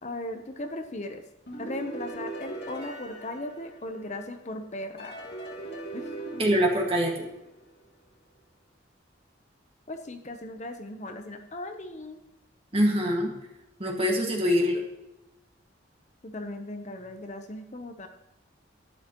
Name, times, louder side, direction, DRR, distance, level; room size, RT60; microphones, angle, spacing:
voice 1, 0.0-1.2 1.6-5.2 5.9-6.1 9.9-12.2 16.2-18.1, left 1 dB, 40° left, 6 dB, 0.8 m, -37 dB
sound 1, 1.5-4.3 5.0-7.8, right 2 dB, 60° left, 2.7 m, -40 dB
voice 2, 6.4-7.1 12.7-13.3 13.8-14.8, equal, 30° right, 0 dB, 1.9 m, -24 dB
12.0 x 9.8 x 3.1 m, 0.93 s
head